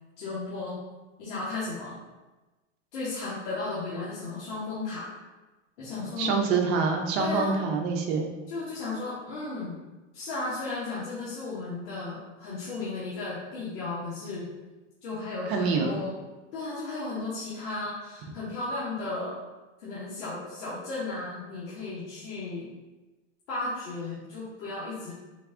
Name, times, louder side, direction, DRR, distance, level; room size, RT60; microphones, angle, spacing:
voice 1, 0.2-0.8 1.2-2.0 2.9-5.1 5.8-6.4 7.2-7.6 8.5-9.8 10.1-14.5 15.0-16.1 16.5-19.4 19.8-22.7 23.5-25.1, left 3 dB, 65° left, -8 dB, 1.3 m, -34 dB
voice 2, 6.2-8.3 15.5-16.0, right 4 dB, 40° right, 3 dB, 0.7 m, -26 dB
4.0 x 2.4 x 3.5 m, 1.1 s
supercardioid pair, 135°, 38 cm